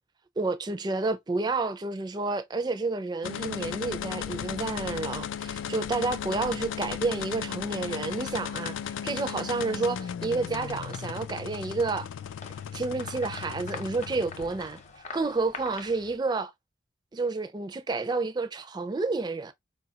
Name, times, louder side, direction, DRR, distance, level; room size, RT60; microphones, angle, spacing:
voice 1, 0.4-8.8 9.0-12.1 12.7-14.8 15.1-16.5 17.1-19.5, right 3 dB, 20° right, 0.4 m, -30 dB
sound 1, 3.2-14.9, left 8 dB, 80° left, 0.3 m, -36 dB
sound 2, 10.5-16.2, left 4 dB, 35° left, 0.7 m, -46 dB
4.6 x 2.3 x 2.8 m
head